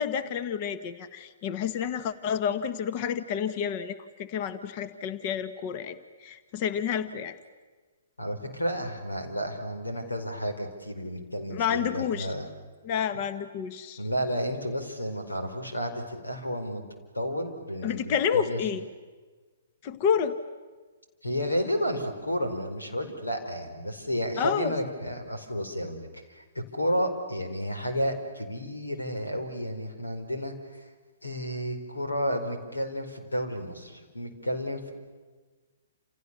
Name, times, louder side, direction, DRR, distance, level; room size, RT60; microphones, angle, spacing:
voice 1, 0.0-6.0 6.2-7.3 11.5-12.3 12.8-14.0 17.8-18.8 19.8-20.4 24.4-24.7, left 7 dB, 35° left, 12 dB, 1.4 m, -29 dB
voice 2, 8.2-12.5 14.0-16.8 17.1-18.6 21.2-30.9 31.2-34.9, equal, 85° left, 6 dB, 4.7 m, -32 dB
29.5 x 28.5 x 6.9 m, 1.4 s
figure-of-eight pair, 120°, 0 cm